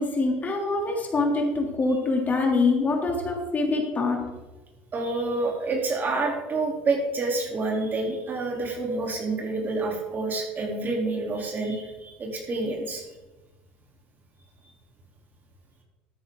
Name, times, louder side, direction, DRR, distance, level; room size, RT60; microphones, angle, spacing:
voice 1, 0.0-4.2, left 3 dB, 30° left, 1 dB, 3.0 m, -24 dB
voice 2, 4.9-13.0 14.6-14.7, right 3 dB, 35° right, 0 dB, 3.5 m, -28 dB
13.0 x 10.0 x 3.9 m, 1.1 s
hypercardioid pair, 80°, 5 cm